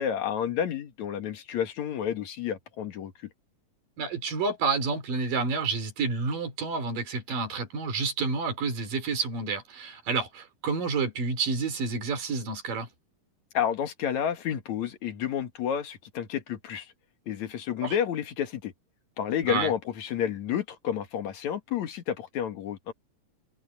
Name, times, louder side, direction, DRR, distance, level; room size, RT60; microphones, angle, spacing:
voice 1, 0.0-3.1 13.5-16.9 17.3-18.7 19.2-22.9, left 9 dB, 60° left, 2.8 m, -30 dB
voice 2, 4.0-12.9 17.8-18.0 19.5-19.7, right 4 dB, 80° right, 5.4 m, -29 dB
omnidirectional pair, 3.8 m